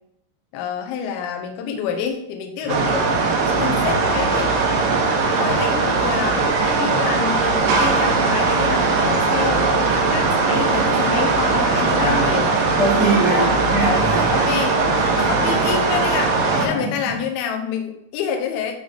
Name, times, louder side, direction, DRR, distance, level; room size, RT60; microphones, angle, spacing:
voice 1, 0.5-3.1 3.5-4.5 5.4-12.5 13.3-13.6 14.3-14.8 15.1-18.7, left 7 dB, 80° left, 3 dB, 2.3 m, -27 dB
sound 1, 2.7-16.7, right 4 dB, 85° right, 1.9 m, -19 dB
voice 2, 6.8-7.1 11.9-14.4 14.8-15.5 16.5-16.9, right 2 dB, 20° right, -9 dB, 0.5 m, -24 dB
11.5 x 3.9 x 3.5 m, 0.78 s
omnidirectional pair, 5.6 m